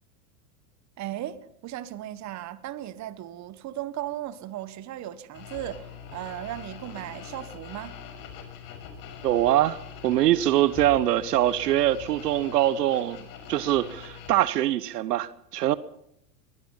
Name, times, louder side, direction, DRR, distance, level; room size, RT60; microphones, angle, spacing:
voice 1, 1.0-7.9, right 13 dB, 35° right, 1.6 m, -36 dB
sound 1, 5.3-14.3, left 7 dB, 45° left, 6.2 m, -43 dB
voice 2, 9.2-15.7, right 13 dB, 80° right, 1.2 m, -23 dB
23.0 x 20.5 x 5.7 m
hypercardioid pair, 115°, 47 cm